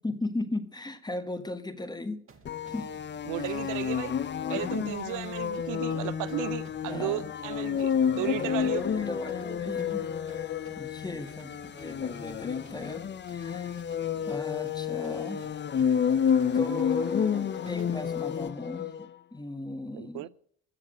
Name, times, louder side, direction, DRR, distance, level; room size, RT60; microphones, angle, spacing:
voice 1, 0.0-2.3 2.7-3.0 3.4-3.5 4.5-4.9 6.9-7.3 8.2-13.0 13.3-13.8 14.3-15.5 16.5-20.3, left 2 dB, 15° left, 1.3 m, -37 dB
sound 1, 2.3-18.1, right 5 dB, 45° right, 1.9 m, -58 dB
sound 2, 2.5-19.1, left 8 dB, 35° left, 0.6 m, -30 dB
voice 2, 3.3-4.1 4.5-8.8 19.9-20.3, right 15 dB, 85° right, 0.5 m, -34 dB
14.0 x 7.3 x 7.9 m
cardioid pair, 90°, 30 cm